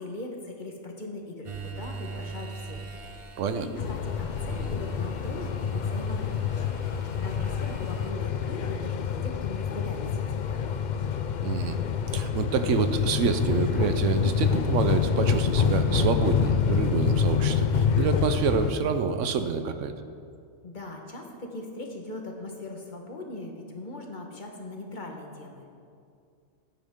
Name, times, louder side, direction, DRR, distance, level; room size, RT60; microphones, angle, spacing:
voice 1, 0.0-10.8 20.6-25.7, left 2 dB, 40° left, 1 dB, 1.3 m, -40 dB
sound 1, 1.4-8.1, right 4 dB, 35° right, 0.6 m, -42 dB
sound 2, 3.8-18.7, left 6 dB, 60° left, 0.5 m, -27 dB
voice 2, 11.4-11.8 12.1-19.9, right 6 dB, 80° right, 9 dB, 1.0 m, -27 dB
15.5 x 8.6 x 3.7 m, 2.3 s
omnidirectional pair, 1.3 m